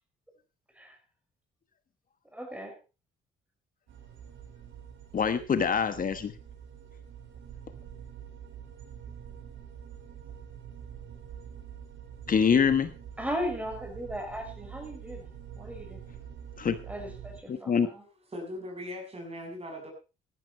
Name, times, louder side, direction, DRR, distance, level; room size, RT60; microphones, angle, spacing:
voice 1, 2.3-2.7 13.2-16.0 16.9-18.0, equal, 5° right, 3 dB, 6.2 m, -37 dB
sound 1, 3.9-17.4, right 8 dB, 75° right, 7.6 m, -46 dB
voice 2, 5.1-6.3 12.3-12.9 16.6-16.8 17.5-17.9, left 6 dB, 45° left, 11 dB, 1.3 m, -25 dB
voice 3, 18.3-19.9, left 1 dB, 30° right, 3 dB, 6.7 m, -39 dB
14.5 x 12.0 x 4.4 m, 0.32 s
cardioid pair, 90°, 20 cm